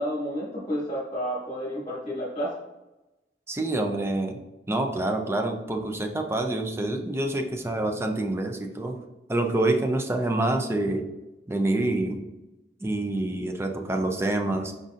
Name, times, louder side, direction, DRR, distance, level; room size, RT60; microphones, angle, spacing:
voice 1, 0.0-2.5, equal, 25° left, -6 dB, 1.4 m, -30 dB
voice 2, 3.5-4.4 4.7-9.0 9.3-11.0 11.5-12.2 12.8-14.7, right 2 dB, 15° right, 4 dB, 0.4 m, -27 dB
5.0 x 4.0 x 2.5 m, 1.0 s
head